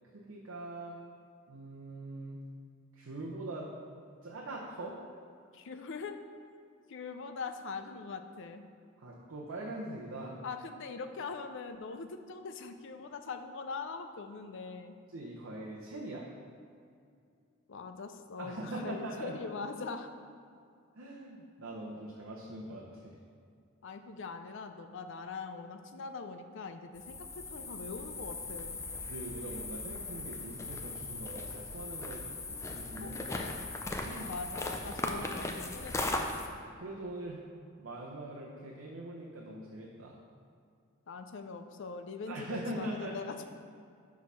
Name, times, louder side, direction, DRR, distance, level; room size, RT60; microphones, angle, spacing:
voice 1, 0.1-1.0 1.5-2.4 2.9-3.7 4.2-5.0 9.0-10.4 15.1-16.3 18.4-19.4 21.0-23.2 29.1-33.2 34.0-34.3 36.5-37.4 37.8-40.2 42.3-43.2, right 1 dB, 80° right, -3 dB, 0.8 m, -42 dB
voice 2, 5.5-6.1 6.9-8.7 10.4-15.0 17.7-20.1 23.8-28.8 33.0-33.6 34.3-36.3 41.1-43.4, left 4 dB, 65° left, 8 dB, 0.5 m, -42 dB
sound 1, 26.9-36.5, left 2 dB, 15° left, 0.5 m, -38 dB
6.2 x 4.7 x 5.5 m, 2.4 s
head